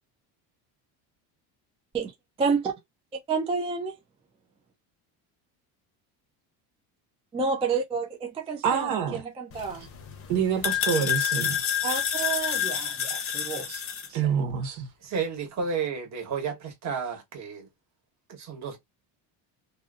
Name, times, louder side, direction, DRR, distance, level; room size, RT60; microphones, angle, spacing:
voice 1, 2.4-2.7 3.3-4.0 7.3-9.9 11.8-13.8 14.1-14.2, right 5 dB, 15° right, 0.3 m, -30 dB
voice 2, 8.6-9.2 10.3-11.6 14.1-14.9, right 7 dB, 70° right, 1.2 m, -26 dB
sound 1, 9.5-14.1, left 8 dB, 30° left, 0.7 m, -29 dB
voice 3, 15.0-17.7 18.3-18.8, right 5 dB, 35° right, 1.2 m, -32 dB
2.7 x 2.5 x 2.3 m
cardioid pair, 130°, 45 cm